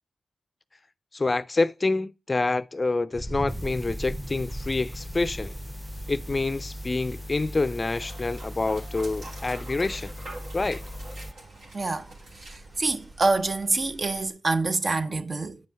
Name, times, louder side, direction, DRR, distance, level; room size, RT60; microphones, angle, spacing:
voice 1, 1.1-5.5 6.1-10.1 10.5-10.8, left 3 dB, 40° left, 0.4 m, -27 dB
sound 1, 3.1-14.3, right 1 dB, 35° right, 1.8 m, -42 dB
sound 2, 3.5-11.3, equal, 5° right, 0.6 m, -39 dB
Dog, 4.0-13.9, right 2 dB, 80° right, 2.4 m, -47 dB
voice 2, 11.7-12.1 12.4-15.6, right 3 dB, 50° right, 0.7 m, -26 dB
9.1 x 5.4 x 3.4 m
supercardioid pair, 45°, 0 cm